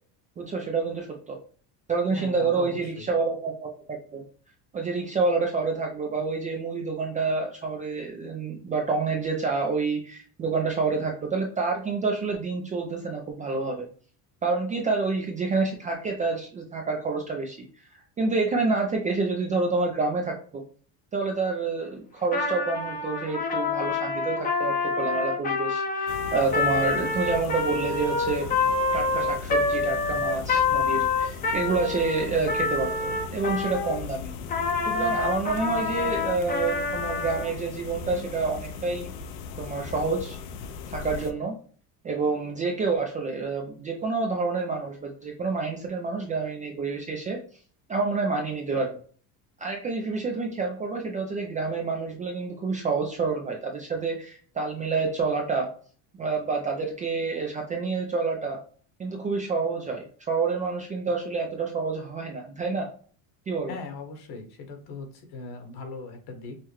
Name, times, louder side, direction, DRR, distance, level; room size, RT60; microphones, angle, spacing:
voice 1, 0.4-1.4 1.9-4.2 4.7-13.9 14.4-20.6 21.1-28.6 28.9-34.4 34.9-39.1 39.6-40.4 40.9-41.6 42.0-47.4 47.9-49.0 49.6-55.7 56.2-58.6 59.0-62.9 63.5-63.8, right 4 dB, 20° right, 1 dB, 0.3 m, -28 dB
voice 2, 2.1-3.1 63.7-66.6, left 3 dB, 60° left, 5 dB, 1.4 m, -39 dB
Trumpet, 22.2-34.0 34.5-37.5, left 4 dB, 20° left, 0.6 m, -27 dB
sound 1, 26.1-41.3, left 6 dB, 85° left, 0.8 m, -38 dB
5.6 x 2.1 x 3.0 m, 0.44 s
cardioid pair, 155°, 45 cm